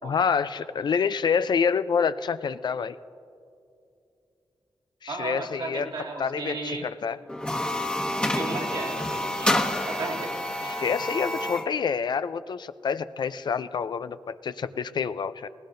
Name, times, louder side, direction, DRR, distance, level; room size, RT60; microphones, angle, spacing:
voice 1, 0.0-3.0 5.0-5.9 6.2-7.2 10.6-15.5, left 6 dB, 60° left, 13 dB, 0.4 m, -27 dB
voice 2, 5.1-6.9 8.2-10.3, right 3 dB, 75° right, -1 dB, 2.1 m, -35 dB
sound 1, 7.3-11.7, left 1 dB, 10° left, 1.2 m, -28 dB
20.5 x 18.0 x 2.6 m, 2.6 s
cardioid pair, 70°, 8 cm